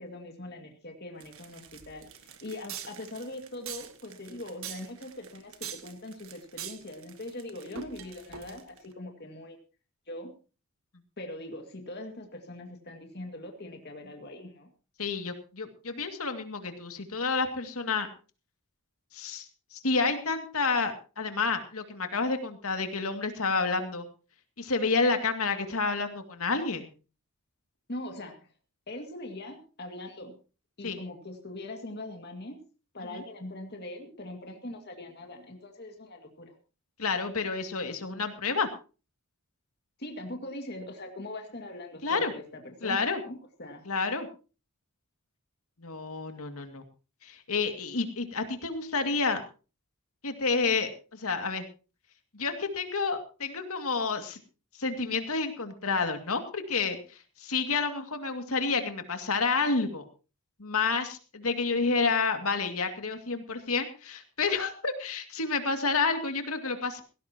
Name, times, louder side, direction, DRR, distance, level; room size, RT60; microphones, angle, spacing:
voice 1, 0.0-9.6 10.1-10.3 11.2-14.7 27.9-28.5 28.9-30.4 30.8-32.6 32.9-36.5 40.0-43.9, left 1 dB, 45° left, 3 dB, 2.2 m, -41 dB
sound 1, 1.2-8.9, right 8 dB, 70° right, 1.7 m, -44 dB
voice 2, 15.0-18.1 19.1-24.0 24.6-26.9 30.8-31.0 33.0-33.2 37.0-38.7 42.0-42.3 42.8-43.2 43.9-44.3 45.8-46.8 47.2-49.4 50.2-51.6 52.3-54.4 54.8-57.0 57.4-60.0 60.6-67.0, left 4 dB, 75° left, 6 dB, 2.3 m, -29 dB
17.5 x 17.0 x 3.0 m, 0.35 s
head